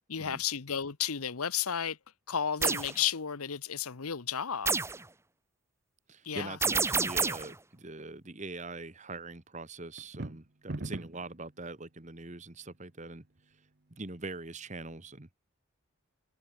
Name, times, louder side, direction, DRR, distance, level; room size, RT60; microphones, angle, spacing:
voice 1, 0.1-2.0 2.3-4.8 6.2-6.6, left 8 dB, 90° left, 1.0 m, -33 dB
sound 1, 2.6-2.9 4.7-5.0 6.6-7.5, right 4 dB, 10° right, 1.0 m, -28 dB
voice 2, 6.1-13.2 13.9-15.3, right 3 dB, 35° right, 1.5 m, -43 dB
sound 2, 10.0-11.3, right 2 dB, 50° right, 1.0 m, -39 dB
head